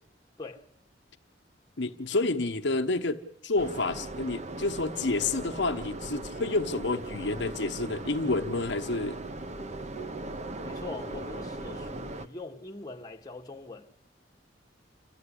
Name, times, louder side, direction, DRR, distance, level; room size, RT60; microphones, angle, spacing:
voice 1, 0.4-0.7 10.6-14.1, left 3 dB, 20° left, 1.5 m, -42 dB
voice 2, 1.8-9.2, left 2 dB, 65° left, 1.1 m, -29 dB
sound 1, 3.6-12.3, right 2 dB, 40° right, 1.0 m, -39 dB
sound 2, 5.3-10.2, right 4 dB, 55° right, 2.0 m, -51 dB
27.5 x 14.5 x 10.0 m
head